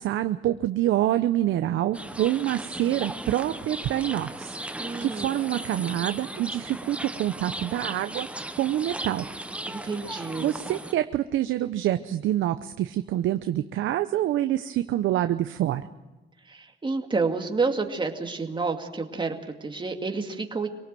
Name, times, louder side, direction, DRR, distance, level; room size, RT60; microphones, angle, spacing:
voice 1, 0.0-4.6 5.0-8.3 8.6-9.3 10.4-15.8, right 13 dB, 80° right, 9 dB, 0.7 m, -26 dB
sound 1, 1.9-10.9, right 1 dB, 5° right, 0.9 m, -37 dB
voice 2, 4.8-5.4 9.7-10.5 16.5-20.7, right 4 dB, 25° right, 4 dB, 2.4 m, -29 dB
24.0 x 18.0 x 7.7 m, 1.1 s
cardioid pair, 90°, 20 cm